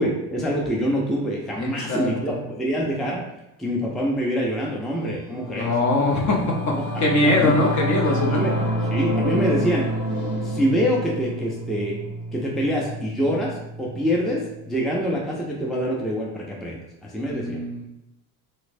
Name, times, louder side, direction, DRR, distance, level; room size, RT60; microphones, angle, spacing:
voice 1, 0.0-3.2 3.6-5.7 7.4-7.5 8.2-8.5 8.9-9.9 10.4-12.0 12.3-17.6, equal, ahead, -3 dB, 0.4 m, -25 dB
voice 2, 1.6-2.4 5.6-8.4 17.2-17.8, left 2 dB, 40° left, 0 dB, 0.8 m, -22 dB
Singing / Musical instrument, 5.1-14.8, right 1 dB, 60° left, 1.4 m, -28 dB
3.2 x 3.1 x 2.5 m, 0.92 s
supercardioid pair, 80°, 45 cm